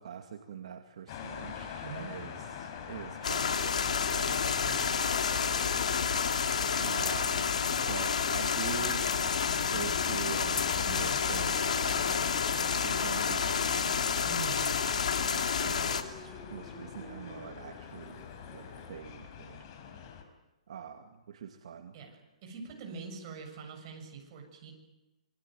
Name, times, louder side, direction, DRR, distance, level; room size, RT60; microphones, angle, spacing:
voice 1, 0.0-6.3 6.8-12.1 12.8-14.1 15.2-18.3 18.5-20.3 20.7-21.9, right 7 dB, 65° right, 4 dB, 2.4 m, -44 dB
sound 1, 1.1-20.2, left 7 dB, 40° left, 4.8 m, -44 dB
sound 2, 3.2-16.0, left 6 dB, 85° left, 3.3 m, -29 dB
voice 2, 4.6-5.1 14.2-15.0 21.9-24.7, right 4 dB, 35° right, 2 dB, 7.4 m, -44 dB
sound 3, 11.5-18.9, left 2 dB, 10° left, 6.7 m, -51 dB
27.0 x 23.5 x 9.2 m, 1.0 s
hypercardioid pair, 160°, 4 cm